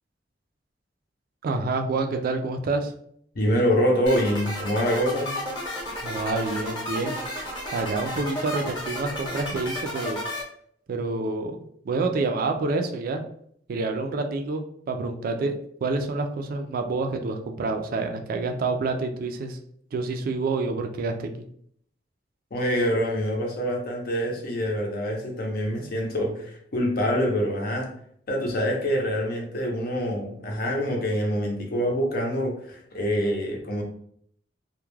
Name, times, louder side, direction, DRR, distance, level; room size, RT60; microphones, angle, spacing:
voice 1, 1.4-2.9 6.0-7.2 7.7-10.2 10.9-11.6 11.8-13.2 13.7-15.5 15.8-19.6 19.9-21.3, right 3 dB, 55° right, 5 dB, 0.3 m, -28 dB
voice 2, 3.3-5.3 22.5-27.9 28.3-33.8, equal, 55° left, 1 dB, 0.6 m, -25 dB
sound 1, 4.1-10.4, left 1 dB, 25° left, 0.8 m, -32 dB
2.2 x 2.1 x 3.1 m, 0.66 s
head